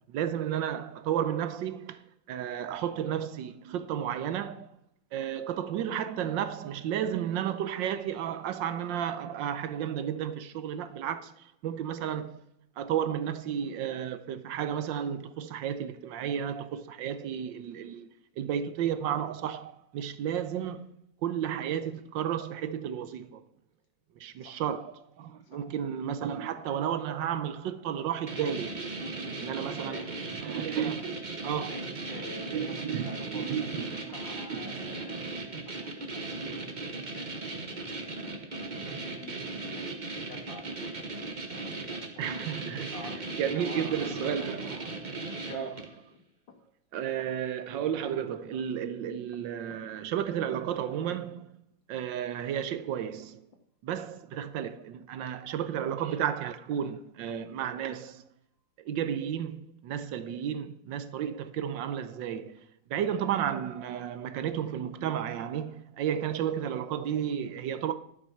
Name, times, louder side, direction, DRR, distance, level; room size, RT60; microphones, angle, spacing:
voice 1, 0.0-2.0 2.3-4.7 5.1-12.4 12.8-18.1 18.4-20.9 21.2-23.4 24.2-28.9 29.4-30.0 30.4-31.7 32.5-34.2 34.5-34.7 41.5-41.6 42.2-42.9 43.4-44.9 45.5-45.7 46.9-51.5 51.9-53.4 53.8-58.3 58.8-67.9, right 9 dB, 75° right, 1.4 m, -33 dB
sound 1, 28.3-46.0, right 3 dB, 30° right, 1.0 m, -37 dB
voice 2, 29.6-30.2 31.6-38.2 38.5-41.1 41.5-42.3 42.7-44.5 45.1-45.8 46.1-46.2 46.5-46.6 52.4-52.5 53.9-54.0 55.3-55.4, left 4 dB, 70° left, 2.3 m, -49 dB
12.0 x 6.2 x 5.8 m
omnidirectional pair, 2.1 m